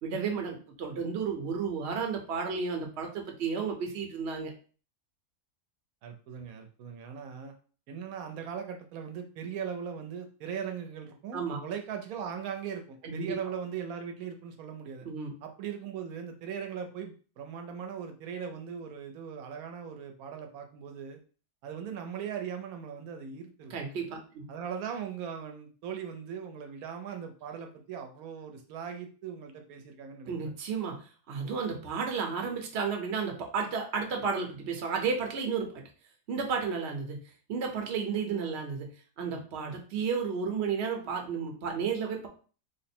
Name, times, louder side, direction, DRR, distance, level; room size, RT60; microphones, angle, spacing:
voice 1, 0.0-4.5 11.3-11.6 13.0-13.3 15.0-15.3 23.7-24.4 30.3-30.9 31.3-35.8 36.3-37.2 37.5-38.9 39.2-42.3, right 5 dB, 55° right, 2 dB, 1.0 m, -32 dB
voice 2, 6.0-7.5 7.9-15.1 15.4-21.2 21.6-23.8 24.5-30.5, right 7 dB, 85° right, 5 dB, 1.1 m, -39 dB
3.4 x 2.0 x 4.2 m, 0.39 s
omnidirectional pair, 1.5 m